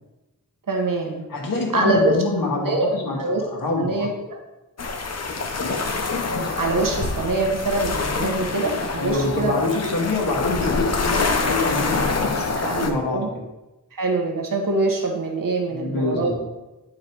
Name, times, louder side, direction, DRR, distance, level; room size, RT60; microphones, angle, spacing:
voice 1, 0.7-1.3 1.7-2.1 2.5-2.9 3.2-3.4 3.8-4.4 6.3-9.5 12.6-13.3 13.9-16.4, right 2 dB, 65° right, 2 dB, 1.5 m, -24 dB
voice 2, 1.3-4.1 5.6-5.8 9.0-13.4 15.7-16.4, left 3 dB, 65° left, -2 dB, 2.0 m, -26 dB
sound 1, 4.8-12.9, left 4 dB, 45° left, 0.9 m, -26 dB
9.2 x 4.7 x 4.7 m, 1.0 s
wide cardioid pair, 95°, 36 cm